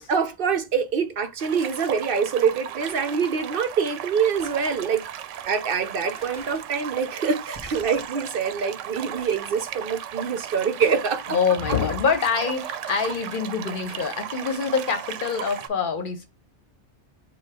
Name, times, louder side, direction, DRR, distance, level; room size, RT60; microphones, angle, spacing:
voice 1, 0.1-5.0 5.4-11.4, right 6 dB, 55° right, 0.8 m, -25 dB
sound 1, 1.4-15.7, right 10 dB, 90° right, 0.9 m, -36 dB
sound 2, 1.6-2.0 2.5-2.6 2.8-3.5 3.8-3.9 4.3-4.9 5.4-5.5 6.1-6.7 7.4-8.3 8.6-8.7 9.2-9.7 10.8-11.4 12.2-12.4 12.9-13.4 13.9-14.3, right 2 dB, 25° right, 1.4 m, -46 dB
voice 2, 11.3-16.3, left 6 dB, 50° left, 0.8 m, -25 dB
4.6 x 2.3 x 4.7 m
omnidirectional pair, 1.2 m